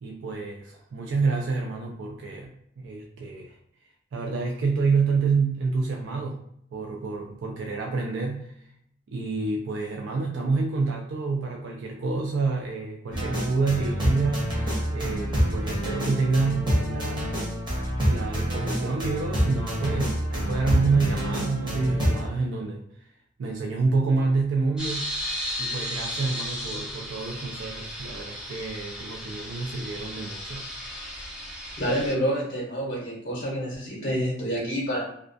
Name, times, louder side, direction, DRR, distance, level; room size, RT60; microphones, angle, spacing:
voice 1, 0.0-3.6 4.1-6.4 6.7-8.7 9.1-14.6 14.9-17.3 18.0-23.1 23.4-25.1 25.6-30.7, right 4 dB, 75° right, 0 dB, 0.3 m, -28 dB
sound 1, 13.1-22.2, equal, 25° right, 0.8 m, -27 dB
sound 2, 24.8-32.1, equal, 5° right, 0.4 m, -35 dB
voice 2, 31.8-35.0, equal, 45° left, -4 dB, 0.6 m, -28 dB
2.3 x 2.2 x 2.5 m, 0.69 s
head